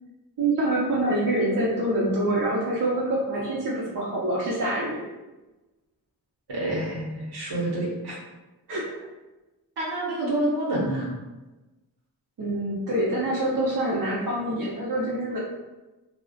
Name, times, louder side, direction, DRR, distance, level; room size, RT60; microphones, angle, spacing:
voice 1, 0.4-5.0 8.7-9.0 12.4-15.4, right 1 dB, 55° right, -5 dB, 0.6 m, -26 dB
voice 2, 6.5-8.1 9.8-11.1, right 1 dB, 70° right, -4 dB, 0.9 m, -28 dB
2.4 x 2.1 x 2.5 m, 1.1 s
cardioid pair, 65°, 40 cm